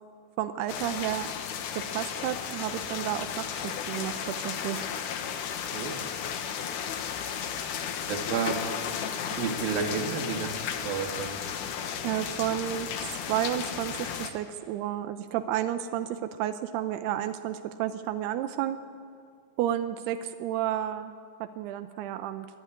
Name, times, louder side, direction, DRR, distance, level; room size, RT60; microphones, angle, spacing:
voice 1, 0.4-1.3 1.7-4.8 12.0-18.8 19.6-21.1 21.4-22.5, right 11 dB, 85° right, 8 dB, 2.3 m, -31 dB
sound 1, 0.7-14.3, left 8 dB, 85° left, 1.8 m, -34 dB
voice 2, 5.7-6.0 8.1-8.6 9.2-11.4, right 6 dB, 55° right, 3 dB, 3.2 m, -31 dB
28.0 x 12.0 x 9.8 m, 2.1 s
omnidirectional pair, 5.5 m